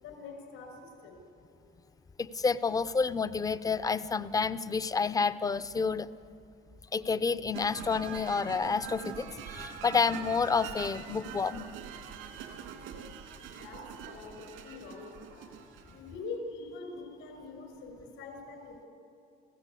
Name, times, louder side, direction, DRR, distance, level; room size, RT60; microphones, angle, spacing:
voice 1, 0.0-1.2 13.4-15.5 15.9-18.9, left 3 dB, 80° left, 5 dB, 6.1 m, -44 dB
voice 2, 2.2-6.1 6.9-11.7, left 5 dB, 15° left, 13 dB, 0.6 m, -29 dB
sound 1, 7.5-16.1, right 7 dB, 85° right, 3.1 m, -44 dB
29.5 x 15.5 x 8.4 m, 2.6 s
cardioid pair, 120°, 20 cm